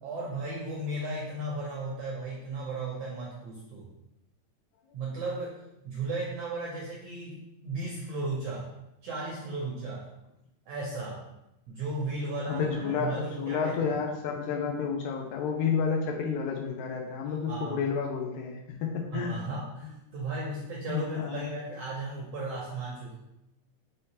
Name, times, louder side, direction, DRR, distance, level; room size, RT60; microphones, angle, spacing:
voice 1, 0.0-3.9 4.9-8.7 9.0-10.1 10.7-11.2 11.7-13.8 17.5-17.8 19.1-23.2, right 2 dB, 80° right, -3 dB, 1.4 m, -35 dB
voice 2, 12.5-19.4 20.9-21.5, left 6 dB, 80° left, 1 dB, 1.9 m, -30 dB
5.5 x 3.3 x 2.8 m, 0.89 s
omnidirectional pair, 3.6 m